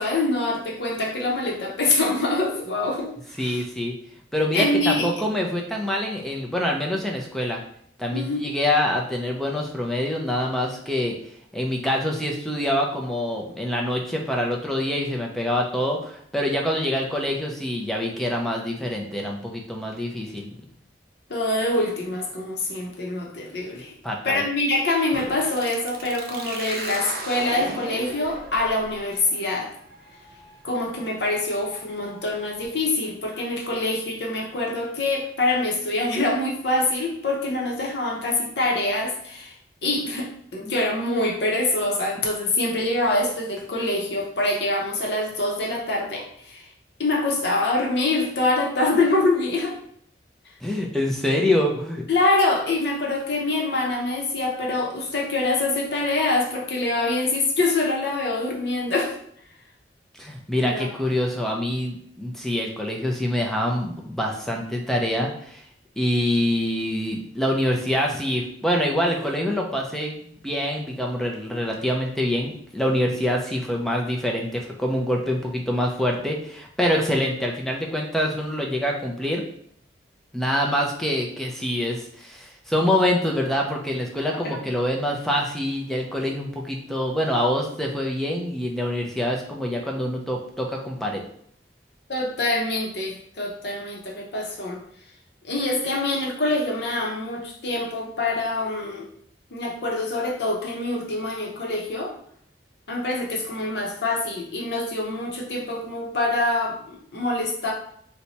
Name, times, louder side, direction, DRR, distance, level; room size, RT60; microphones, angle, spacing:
voice 1, 0.0-3.1 3.4-3.6 4.5-5.1 8.1-8.5 21.3-23.9 24.2-29.7 30.6-39.5 39.8-46.6 47.0-49.8 52.1-59.1 60.6-60.9 84.4-84.6 92.1-94.8 95.4-99.0 99.5-102.1 102.9-107.7, left 2 dB, 70° left, -1 dB, 0.8 m, -25 dB
voice 2, 3.4-3.9 4.3-7.6 8.0-11.2 11.5-20.5 24.0-24.4 50.6-52.0 60.2-65.6 66.0-79.4 80.3-91.2, left 1 dB, ahead, 0 dB, 0.4 m, -25 dB
sound 1, 25.1-32.6, right 3 dB, 55° right, 0.5 m, -38 dB
2.8 x 2.2 x 4.0 m, 0.65 s
head